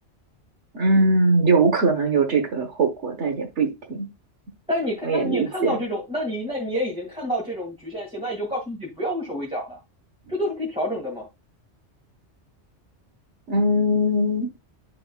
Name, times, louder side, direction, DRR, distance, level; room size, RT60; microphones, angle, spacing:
voice 1, 0.7-4.1 5.0-5.8 13.5-14.5, right 2 dB, 75° right, 1.4 m, -21 dB
voice 2, 4.7-9.8 10.3-11.3, equal, 5° right, 2.0 m, -28 dB
11.5 x 3.9 x 2.3 m
omnidirectional pair, 1.2 m